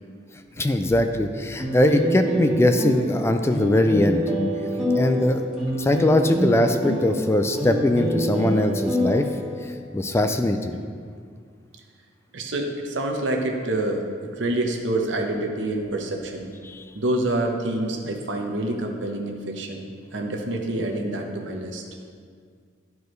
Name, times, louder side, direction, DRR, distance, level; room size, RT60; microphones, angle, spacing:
voice 1, 0.6-4.2 4.9-5.5 5.8-9.3 9.9-10.8 16.6-16.8, left 1 dB, 15° left, 6 dB, 0.3 m, -21 dB
sound 1, 1.6-9.7, equal, ahead, 1.7 m, -27 dB
voice 2, 12.3-16.5 16.9-21.8, right 1 dB, 80° right, 2 dB, 0.9 m, -27 dB
12.0 x 4.6 x 3.2 m, 2.1 s
head